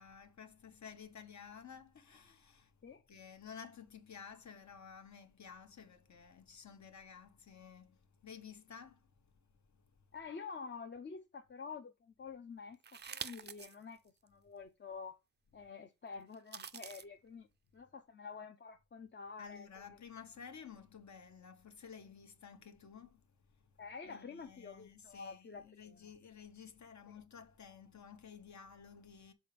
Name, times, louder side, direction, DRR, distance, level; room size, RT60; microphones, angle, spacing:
voice 1, 0.0-10.0 19.4-23.8 24.0-29.3, left 7 dB, 60° left, 1.1 m, -54 dB
voice 2, 10.1-15.2 15.5-17.5 17.7-19.7 23.8-26.1 27.1-27.2, left 5 dB, 35° left, 0.6 m, -48 dB
sound 1, 12.8-13.8 14.3-14.4 16.3-17.0, right 7 dB, 35° right, 0.4 m, -46 dB
6.3 x 4.2 x 5.0 m
wide cardioid pair, 115°, 32 cm